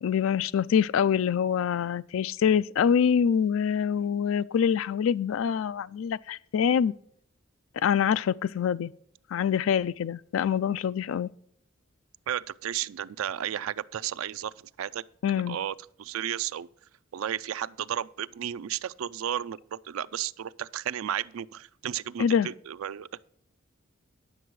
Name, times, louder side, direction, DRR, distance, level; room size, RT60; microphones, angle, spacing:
voice 1, 0.0-6.9 7.8-8.9 9.3-11.3 15.2-15.6 22.2-22.5, left 7 dB, 75° left, 0.3 m, -25 dB
voice 2, 12.3-15.0 15.5-16.7 17.1-23.2, right 10 dB, 90° right, 0.4 m, -33 dB
9.9 x 7.7 x 4.6 m
head